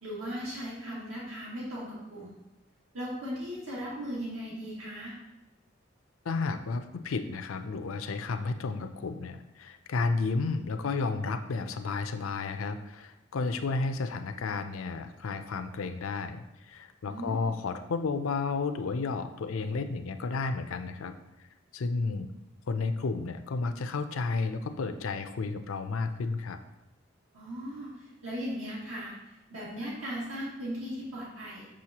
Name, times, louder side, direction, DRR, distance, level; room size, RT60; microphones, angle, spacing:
voice 1, 0.0-2.3 2.9-5.1 17.1-17.6 27.3-31.7, equal, 85° right, -6 dB, 2.2 m, -38 dB
voice 2, 6.2-21.1 21.7-22.3 22.7-26.6, left 4 dB, 85° left, 8 dB, 0.5 m, -32 dB
6.3 x 6.2 x 2.9 m, 0.96 s
head